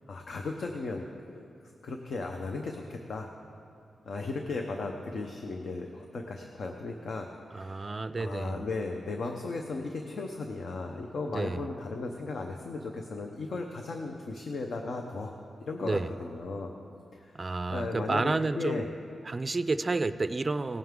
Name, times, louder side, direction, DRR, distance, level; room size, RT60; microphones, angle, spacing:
voice 1, 0.1-3.3 4.0-15.3 15.6-16.7 17.1-18.9, left 3 dB, 70° left, 3 dB, 0.8 m, -36 dB
voice 2, 7.5-8.6 11.3-11.6 15.8-16.1 17.3-18.8 19.3-20.8, right 3 dB, 30° right, 12 dB, 0.4 m, -30 dB
18.5 x 9.2 x 3.7 m, 2.4 s
wide cardioid pair, 110°, 0 cm